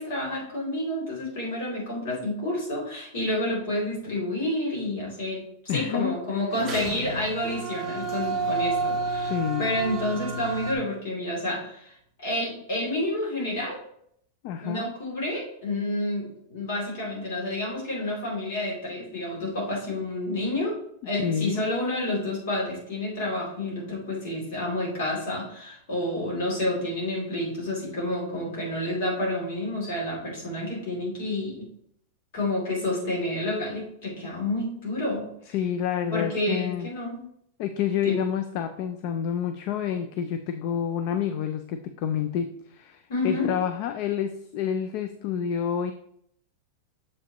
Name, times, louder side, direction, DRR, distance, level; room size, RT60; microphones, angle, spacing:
voice 1, 0.0-5.4 5.7-9.3 9.6-12.0 12.2-13.8 14.6-20.8 21.0-31.7 32.3-35.3 36.1-37.2 38.0-38.2 43.1-43.5, left 1 dB, 55° left, -2 dB, 2.7 m, -29 dB
voice 2, 5.7-6.4 9.3-9.7 14.4-14.9 21.2-21.6 35.5-36.9 37.6-45.9, left 8 dB, 35° left, 9 dB, 0.3 m, -28 dB
sound 1, 6.5-10.7, right 3 dB, 10° right, 1.0 m, -30 dB
7.0 x 5.1 x 2.9 m, 0.70 s
supercardioid pair, 180°, 0 cm